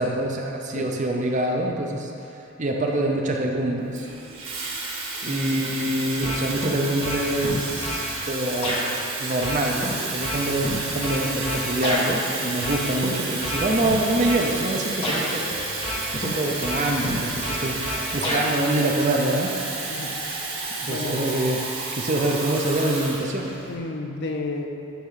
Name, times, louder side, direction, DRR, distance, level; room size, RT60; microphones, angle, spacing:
voice 1, 0.0-2.1 2.6-4.1 5.2-8.8 9.2-19.6 20.8-21.7 21.9-23.5, right 1 dB, 35° right, 1 dB, 0.6 m, -25 dB
Water tap faucet / Fill (with liquid), 3.9-23.7, right 3 dB, 75° right, 1.6 m, -31 dB
voice 2, 5.2-5.8 19.9-20.1 20.9-21.4 23.7-24.7, left 3 dB, 55° left, 3 dB, 0.7 m, -32 dB
sound 1, 6.2-6.7 7.0-8.0 8.6-8.8 9.4-12.1 12.6-13.1 13.4-14.4 15.0-15.2 15.8-16.3 16.6-18.5, left 1 dB, 30° left, 1.3 m, -29 dB
10.0 x 3.6 x 5.6 m, 2.8 s
head